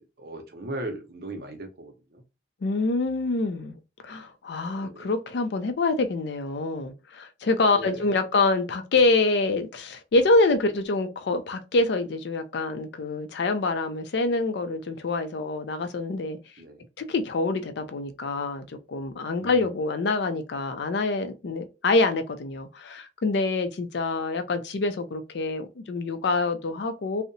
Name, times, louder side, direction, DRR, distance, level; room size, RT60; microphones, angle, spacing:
voice 1, 0.0-2.2 4.8-5.1 7.7-8.1 16.6-16.9 19.4-19.7, right 1 dB, 55° right, 0.6 m, -38 dB
voice 2, 2.6-3.8 4.0-16.4 17.0-27.2, left 3 dB, 65° left, 0.4 m, -26 dB
2.7 x 2.0 x 2.6 m
head